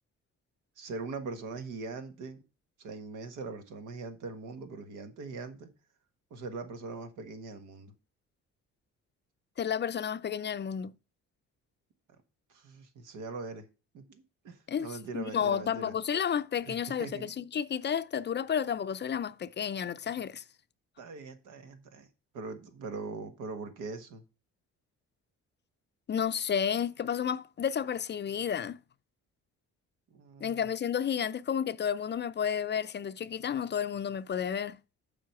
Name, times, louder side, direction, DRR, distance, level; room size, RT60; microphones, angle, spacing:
voice 1, 0.8-2.4 2.8-5.7 6.3-7.9 12.5-13.7 13.9-15.9 16.6-17.3 21.0-22.1 22.3-24.2 30.1-30.7, right 3 dB, 85° right, 1.4 m, -41 dB
voice 2, 9.6-10.9 14.7-14.9 15.1-20.4 26.1-28.8 30.4-34.8, left 8 dB, 35° left, 0.5 m, -31 dB
7.5 x 5.0 x 5.9 m
cardioid pair, 90°, 30 cm